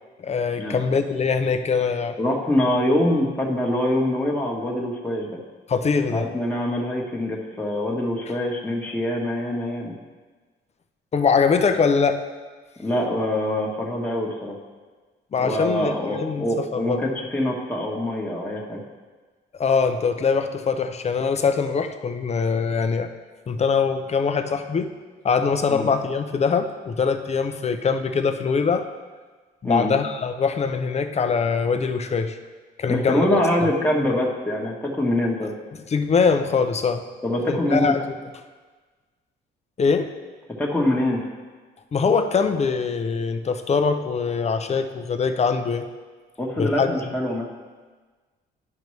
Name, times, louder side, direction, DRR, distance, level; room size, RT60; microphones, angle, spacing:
voice 1, 0.2-2.2 5.7-6.3 11.1-12.2 15.3-17.0 19.6-23.1 23.5-24.9 25.2-28.9 29.6-32.4 32.8-33.4 35.9-37.1 37.5-38.0 39.8-40.1 41.9-45.9 46.6-46.9, left 5 dB, 35° left, 8 dB, 0.6 m, -22 dB
voice 2, 2.2-5.3 6.1-9.9 12.8-14.5 15.4-18.8 25.7-25.9 29.6-29.9 32.9-35.5 37.2-37.9 40.6-41.2 46.4-47.5, left 1 dB, 10° left, -2 dB, 1.2 m, -24 dB
10.5 x 5.1 x 3.2 m, 1.4 s
cardioid pair, 90°, 20 cm